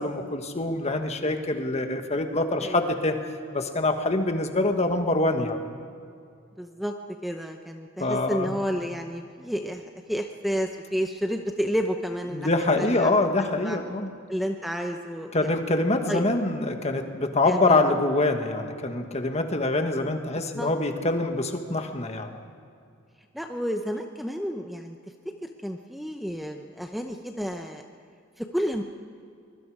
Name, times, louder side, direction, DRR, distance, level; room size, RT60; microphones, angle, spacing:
voice 1, 0.0-3.2 3.5-5.6 8.0-8.6 12.3-14.1 15.3-22.4, left 2 dB, 30° left, 5 dB, 1.5 m, -25 dB
voice 2, 6.6-6.9 7.2-9.8 10.1-12.5 12.8-13.1 13.6-13.8 14.3-15.5 16.1-16.2 17.5-17.8 20.6-20.7 23.3-25.0 25.4-27.8 28.4-28.8, equal, ahead, 4 dB, 0.7 m, -30 dB
24.0 x 22.0 x 4.9 m, 2.4 s
head